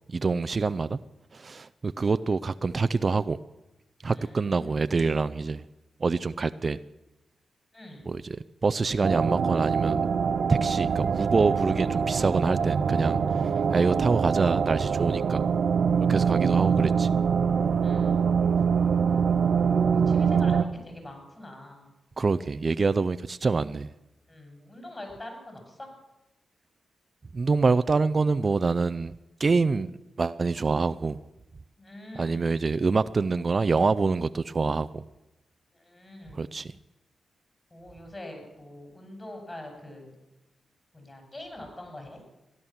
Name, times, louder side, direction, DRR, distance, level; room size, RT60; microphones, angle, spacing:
voice 1, 0.1-1.0 1.3-3.4 4.0-5.6 6.0-6.8 8.1-8.4 8.6-10.0 10.5-13.2 13.7-15.5 16.1-17.1 22.2-23.9 27.3-29.1 29.4-31.2 32.2-35.0 36.3-36.7, right 4 dB, 45° right, 14 dB, 0.5 m, -26 dB
voice 2, 4.1-4.9 7.7-8.1 17.8-18.4 19.7-21.9 24.3-25.9 31.8-32.6 35.7-36.5 37.7-40.1 40.9-42.2, left 1 dB, 30° left, 3 dB, 6.6 m, -44 dB
sound 1, 9.0-20.7, right 6 dB, 70° right, 0.8 m, -24 dB
16.0 x 11.0 x 7.2 m, 0.98 s
supercardioid pair, 50°, 0 cm